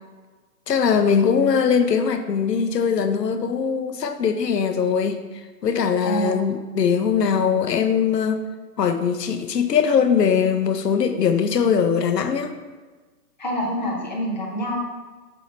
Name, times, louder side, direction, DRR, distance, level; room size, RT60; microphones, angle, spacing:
voice 1, 0.7-5.2 5.6-8.4 8.8-12.5, left 6 dB, 85° left, 8 dB, 0.7 m, -21 dB
voice 2, 6.0-6.4 13.4-14.8, equal, 30° left, -3 dB, 0.6 m, -26 dB
5.5 x 5.5 x 3.1 m, 1.3 s
hypercardioid pair, 170°, 48 cm